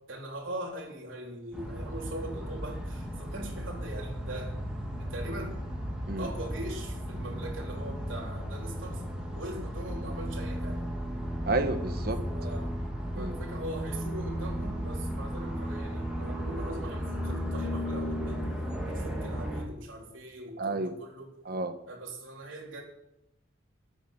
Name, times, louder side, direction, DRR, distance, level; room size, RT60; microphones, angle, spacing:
voice 1, 0.1-4.6 5.0-5.6 6.2-9.0 9.4-10.8 12.3-12.8 13.2-18.5 18.9-21.3 21.9-22.8, right 1 dB, 75° right, -1 dB, 3.6 m, -41 dB
sound 1, 1.5-19.6, equal, 5° right, 2.7 m, -35 dB
voice 2, 11.5-12.2 13.1-13.4 20.6-20.9 21.4-21.8, right 2 dB, 50° right, 8 dB, 1.2 m, -30 dB
13.0 x 8.4 x 7.8 m, 0.85 s
head